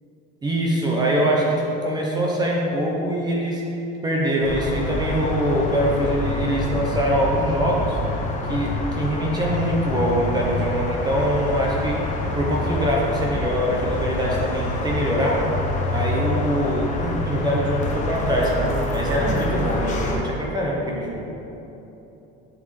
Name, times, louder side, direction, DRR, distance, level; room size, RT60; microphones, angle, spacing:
voice 1, 0.4-3.6 4.0-8.0 8.5-12.0 12.3-15.5 15.9-21.2, equal, 20° right, -3 dB, 0.9 m, -23 dB
sound 1, 4.4-20.2, left 1 dB, 35° left, 1.0 m, -26 dB
10.5 x 4.3 x 3.3 m, 3.0 s
cardioid pair, 130°, 20 cm